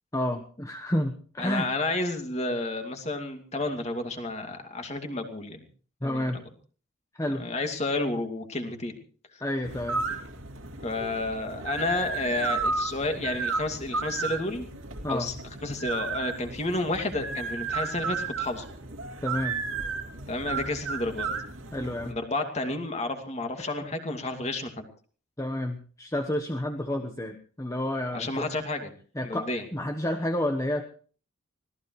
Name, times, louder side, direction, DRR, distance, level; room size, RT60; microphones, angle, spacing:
voice 1, 0.1-1.7 6.0-6.4 7.1-7.4 9.4-10.0 15.0-15.3 19.2-19.6 21.7-22.2 23.8-23.9 25.4-28.5 29.1-30.9, left 1 dB, 15° left, 5 dB, 1.1 m, -30 dB
voice 2, 1.4-5.6 6.0-6.3 7.3-8.9 9.3-9.4 10.8-14.7 15.1-15.3 15.6-18.7 20.3-21.3 22.0-24.9 28.1-28.9 29.2-29.6, left 2 dB, 30° left, 5 dB, 2.5 m, -31 dB
sound 1, 9.6-22.1, right 4 dB, 75° right, 2.7 m, -33 dB
24.5 x 17.5 x 3.2 m, 0.41 s
head